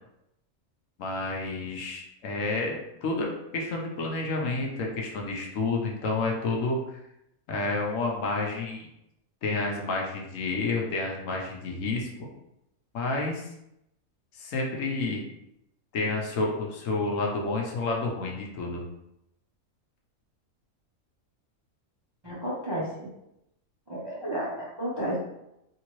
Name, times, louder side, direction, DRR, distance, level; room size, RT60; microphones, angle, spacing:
voice 1, 1.0-3.3 3.5-6.8 7.5-8.9 9.4-12.3 12.9-13.4 14.4-15.2 15.9-18.8, left 3 dB, 70° left, 0 dB, 1.0 m, -30 dB
voice 2, 22.2-23.1 23.9-25.2, right 1 dB, 30° right, -6 dB, 0.5 m, -32 dB
3.3 x 2.8 x 3.0 m, 0.83 s
omnidirectional pair, 1.5 m